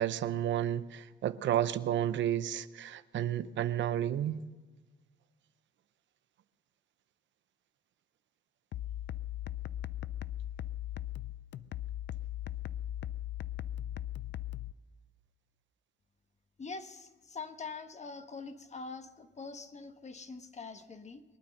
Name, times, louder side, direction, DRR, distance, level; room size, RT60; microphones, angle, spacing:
voice 1, 0.0-4.4, right 11 dB, 70° right, 0.7 m, -31 dB
sound 1, 8.7-14.7, left 12 dB, 65° left, 0.5 m, -38 dB
voice 2, 16.6-21.2, left 4 dB, 35° left, 1.3 m, -44 dB
22.5 x 9.4 x 6.5 m
cardioid pair, 90°, 20 cm